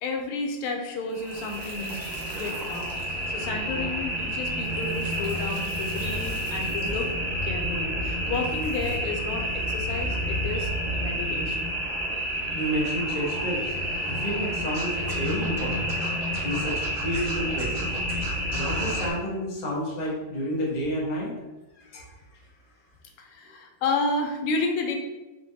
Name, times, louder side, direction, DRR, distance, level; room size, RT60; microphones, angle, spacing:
voice 1, 0.0-7.1 7.4-11.7 23.2-25.0, left 3 dB, 85° left, 3 dB, 1.5 m, -32 dB
sound 1, 1.1-19.1, equal, 45° right, 0.5 m, -29 dB
voice 2, 12.5-13.7 14.1-15.9 16.4-17.9 18.5-21.3 21.7-22.1, equal, 30° left, -5 dB, 0.8 m, -30 dB
Scratching (performance technique), 14.7-19.1, right 2 dB, 60° right, 1.9 m, -39 dB
4.4 x 3.7 x 2.7 m, 1.1 s
omnidirectional pair, 2.4 m